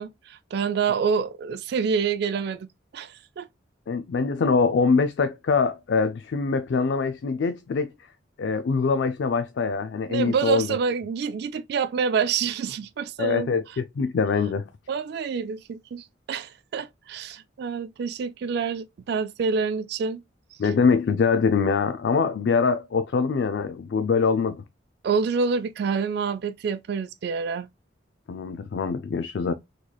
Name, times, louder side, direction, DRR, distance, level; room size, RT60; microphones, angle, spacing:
voice 1, 0.0-2.7 2.9-3.5 10.1-13.6 14.9-20.2 22.2-22.3 25.0-27.7, right 5 dB, 55° right, 0.3 m, -27 dB
voice 2, 3.9-7.9 8.4-10.8 13.2-14.6 20.6-24.6 28.3-29.5, left 5 dB, 65° left, 0.4 m, -23 dB
3.8 x 3.1 x 2.2 m
head